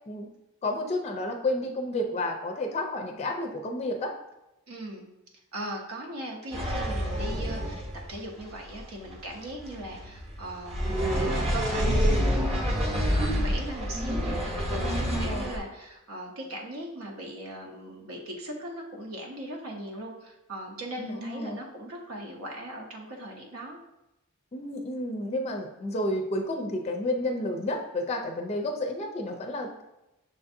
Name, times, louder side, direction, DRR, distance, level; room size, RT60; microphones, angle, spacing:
voice 1, 0.6-4.1 14.8-15.5 21.0-21.6 24.5-29.8, left 1 dB, 30° left, 3 dB, 0.4 m, -31 dB
voice 2, 4.7-5.0 5.5-7.8 8.1-14.4 14.7-23.8, right 1 dB, 80° right, 0 dB, 0.8 m, -39 dB
sound 1, 6.5-15.6, equal, 30° right, 0.7 m, -28 dB
6.2 x 2.5 x 2.6 m, 0.93 s
head